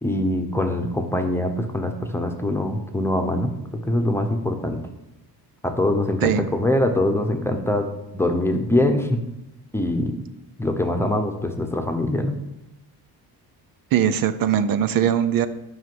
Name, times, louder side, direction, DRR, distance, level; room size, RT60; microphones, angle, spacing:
voice 1, 0.0-4.8 5.6-7.9 8.1-9.2 9.7-10.2 10.6-12.4, left 1 dB, 5° left, 5 dB, 1.0 m, -23 dB
voice 2, 13.9-15.5, right 9 dB, 65° right, 12 dB, 0.8 m, -20 dB
11.0 x 5.7 x 7.8 m, 0.92 s
cardioid pair, 165°, 38 cm